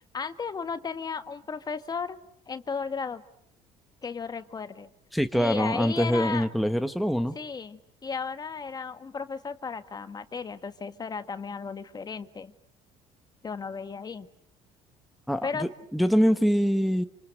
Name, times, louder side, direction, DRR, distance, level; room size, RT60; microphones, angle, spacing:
voice 1, 0.0-2.2 2.5-3.2 4.0-4.9 5.3-6.5 7.3-12.5 13.4-14.3 15.4-15.7, left 5 dB, 30° left, 9 dB, 1.7 m, -35 dB
voice 2, 5.1-7.4 15.3-17.0, equal, ahead, 7 dB, 1.3 m, -24 dB
28.0 x 27.0 x 7.9 m, 0.72 s
cardioid pair, 110°, 14 cm